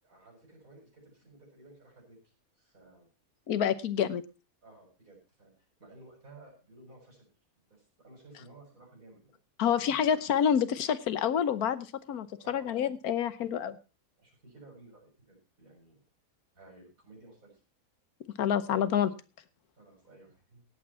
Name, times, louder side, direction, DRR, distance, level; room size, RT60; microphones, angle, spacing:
voice 1, 0.0-3.1 4.6-7.3 7.7-9.4 9.7-10.2 12.4-12.7 14.2-16.0 16.5-17.6 19.8-20.6, right 2 dB, 65° right, -1 dB, 7.3 m, -55 dB
voice 2, 3.5-4.2 9.6-13.8 18.4-19.1, left 8 dB, 85° left, 14 dB, 1.4 m, -28 dB
17.0 x 8.8 x 4.2 m, 0.32 s
omnidirectional pair, 1.5 m